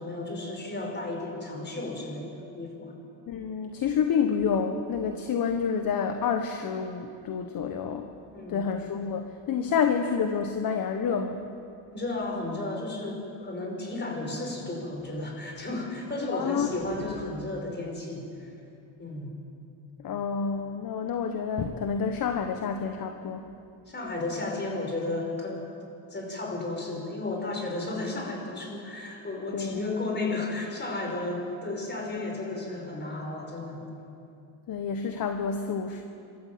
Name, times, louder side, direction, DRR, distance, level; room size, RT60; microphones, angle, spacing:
voice 1, 0.0-2.9 8.3-8.6 11.9-18.5 19.0-19.3 23.9-25.7 26.1-33.9, left 2 dB, 20° left, 1 dB, 5.7 m, -33 dB
voice 2, 3.3-8.1 8.5-11.4 16.3-16.7 20.0-23.4 29.5-29.8 34.7-36.0, left 6 dB, 45° left, 5 dB, 1.5 m, -28 dB
26.0 x 14.0 x 7.7 m, 2.6 s
cardioid pair, 110°, 48 cm